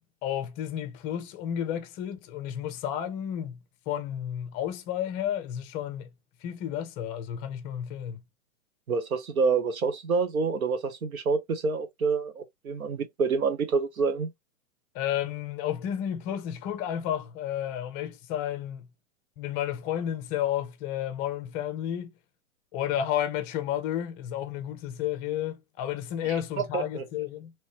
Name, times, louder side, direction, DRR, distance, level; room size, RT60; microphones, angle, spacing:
voice 1, 0.2-3.6 3.9-6.1 6.4-8.2 14.9-18.9 19.4-22.1 22.7-27.5, left 10 dB, 20° left, 0.5 m, -32 dB
voice 2, 8.9-14.3 26.2-27.1, right 5 dB, 80° right, 1.1 m, -27 dB
3.1 x 3.1 x 2.8 m
hypercardioid pair, 125°, 41 cm